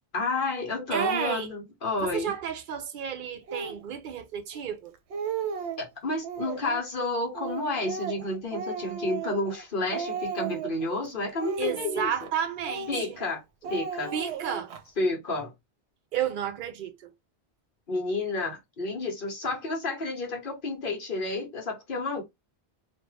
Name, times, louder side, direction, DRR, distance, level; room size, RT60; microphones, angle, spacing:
voice 1, 0.1-2.3 5.8-12.1 12.9-13.4 13.7-14.1 15.0-15.5 17.9-22.2, left 2 dB, 55° left, 1.1 m, -30 dB
voice 2, 0.9-1.5 2.0-4.9 11.6-13.2 13.6-13.7 14.1-14.7 16.1-17.1, right 8 dB, 55° right, 0.7 m, -32 dB
Speech, 3.5-3.8 4.5-4.6 4.9-5.8 6.2-6.8 7.3-9.6 9.9-10.8 11.3-12.3 12.6-13.3 13.6-14.8, right 6 dB, 85° right, 0.9 m, -35 dB
2.6 x 2.4 x 3.0 m
omnidirectional pair, 1.1 m